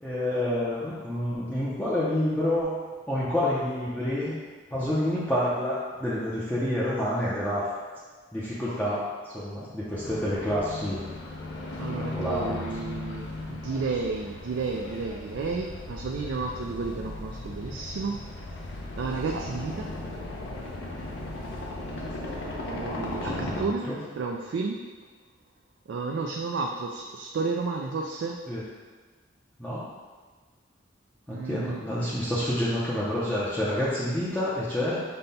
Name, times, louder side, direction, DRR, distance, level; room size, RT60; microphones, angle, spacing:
voice 1, 0.0-4.4 4.7-7.7 8.3-11.0 12.0-12.7 23.2-24.0 28.5-28.6 29.6-29.9 31.3-35.0, left 1 dB, 10° left, -9 dB, 0.6 m, -28 dB
voice 2, 8.7-9.1 11.8-18.2 19.0-19.9 22.6-23.9 24.2-24.8 25.9-28.4 31.3-31.8, right 4 dB, 80° right, 0 dB, 0.3 m, -32 dB
sound 1, 10.0-23.6, left 2 dB, 85° left, 0.6 m, -37 dB
5.4 x 2.2 x 4.1 m, 1.4 s
head